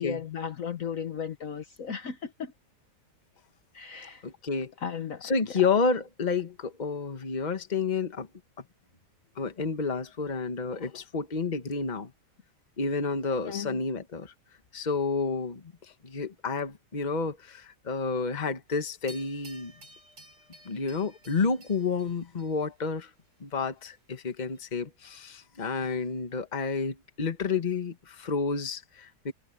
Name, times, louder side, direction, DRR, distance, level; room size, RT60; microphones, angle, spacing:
voice 1, 0.0-2.5 3.7-4.3 4.8-5.4 13.5-13.8, left 7 dB, 55° left, 1.4 m, -35 dB
voice 2, 4.2-4.7 5.2-8.3 9.4-12.1 12.8-14.3 14.7-15.6 16.0-19.7 20.6-23.1 23.4-29.3, left 4 dB, 25° left, 1.4 m, -30 dB
sound 1, 19.1-22.9 24.6-24.7, right 1 dB, 75° right, 5.1 m, -53 dB
omnidirectional pair, 1.8 m